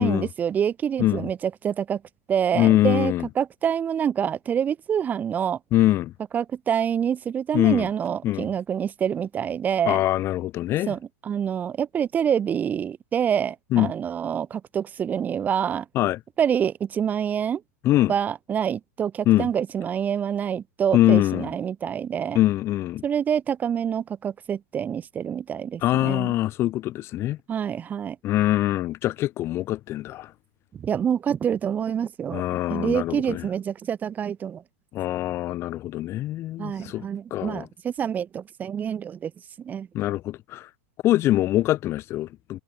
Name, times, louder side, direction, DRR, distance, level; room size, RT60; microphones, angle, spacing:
voice 1, 0.0-2.0 2.3-5.6 6.3-10.0 10.9-15.9 16.4-17.6 18.1-22.4 23.0-26.4 27.5-28.2 30.7-32.4 32.7-34.6 36.6-39.3 39.6-39.9, right 8 dB, 20° right, 3.7 m, -26 dB
voice 2, 2.5-3.3 5.7-6.1 7.5-7.9 8.2-8.5 9.9-10.9 13.7-13.9 15.9-16.2 17.8-18.1 19.3-19.5 20.9-21.5 22.3-23.0 25.8-27.4 28.2-30.3 32.3-33.5 34.9-37.0 37.3-37.7 39.9-40.7 41.0-42.6, left 15 dB, 35° left, 4.8 m, -23 dB
hypercardioid pair, 135°, 8 cm